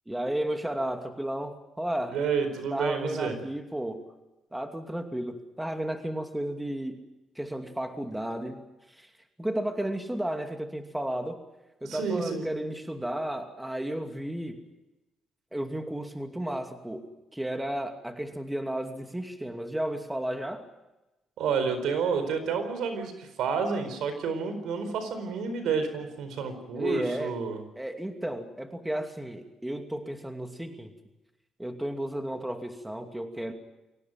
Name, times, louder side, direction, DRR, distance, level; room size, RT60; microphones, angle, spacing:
voice 1, 0.1-2.2 2.7-4.1 4.5-7.0 7.4-8.6 9.0-9.1 9.4-11.4 11.8-14.6 15.5-20.7 26.7-27.4 27.8-30.9 31.6-33.5, right 1 dB, 5° right, 5 dB, 2.6 m, -33 dB
voice 2, 2.1-3.4 11.8-12.5 21.4-27.6, right 5 dB, 80° right, 9 dB, 4.5 m, -30 dB
24.0 x 18.0 x 9.2 m, 1.0 s
cardioid pair, 90°, 0 cm